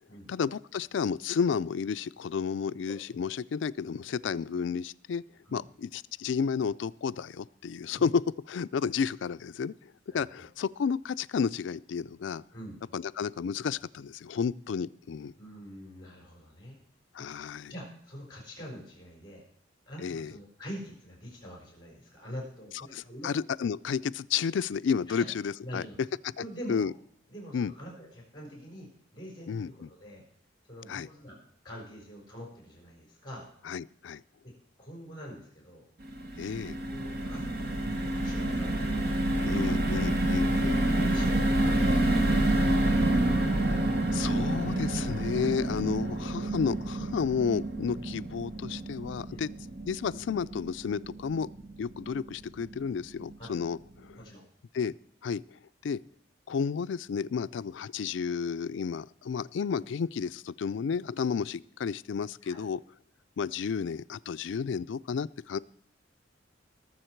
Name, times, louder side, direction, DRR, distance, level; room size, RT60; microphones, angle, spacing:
voice 1, 0.3-5.2 5.5-8.2 8.5-12.4 12.9-15.3 17.1-17.7 20.0-20.3 22.9-25.9 26.7-26.9 27.5-27.7 29.5-29.7 30.9-31.1 33.7-34.2 36.4-36.8 39.4-40.8 43.5-43.8 44.1-49.5 49.9-51.5 51.8-54.2 54.7-54.9 55.2-55.4 55.8-56.0 56.5-62.8 63.4-65.6, left 6 dB, 75° left, 16 dB, 0.4 m, -32 dB
voice 2, 2.9-3.3 5.5-5.7 7.9-8.1 10.1-10.5 12.5-12.8 15.3-16.8 17.2-17.3 17.7-19.5 19.9-23.3 25.1-25.3 25.6-26.0 26.4-26.9 27.3-30.2 30.6-31.4 31.6-33.5 34.4-34.5 34.8-35.8 36.9-39.8 40.5-42.7 49.2-49.5 53.4-53.5 54.2-54.4 62.4-62.7, equal, 25° left, -1 dB, 4.3 m, -45 dB
sound 1, 36.0-52.3 52.7-52.8 53.1-53.3, right 1 dB, 55° right, 1.4 m, -28 dB
19.5 x 7.1 x 4.5 m, 0.67 s
head